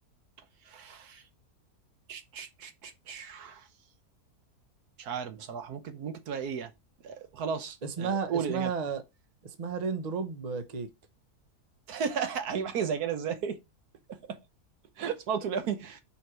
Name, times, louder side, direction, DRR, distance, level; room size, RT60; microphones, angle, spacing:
voice 1, 0.7-1.2 2.1-3.7 5.0-6.7 7.0-8.7 11.9-13.6 14.1-14.4 15.0-16.0, right 7 dB, 75° right, 1.4 m, -34 dB
voice 2, 7.8-9.0 9.4-10.9, right 5 dB, 30° right, 0.9 m, -33 dB
5.7 x 4.4 x 4.8 m
omnidirectional pair, 1.6 m